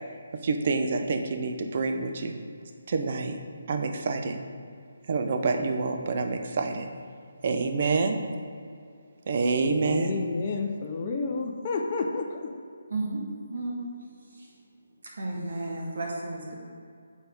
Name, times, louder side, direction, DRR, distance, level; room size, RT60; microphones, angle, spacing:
voice 1, 0.4-2.4 2.9-3.4 3.7-4.4 5.1-6.9 7.4-8.2 9.3-10.2, right 4 dB, 45° right, 5 dB, 0.6 m, -27 dB
voice 2, 9.8-12.9, left 4 dB, 35° left, 2 dB, 0.5 m, -31 dB
voice 3, 12.9-13.2 13.5-14.5 15.2-16.5, right 2 dB, 60° right, -2 dB, 1.5 m, -33 dB
6.0 x 4.1 x 5.1 m, 2.3 s
figure-of-eight pair, 150°, 0 cm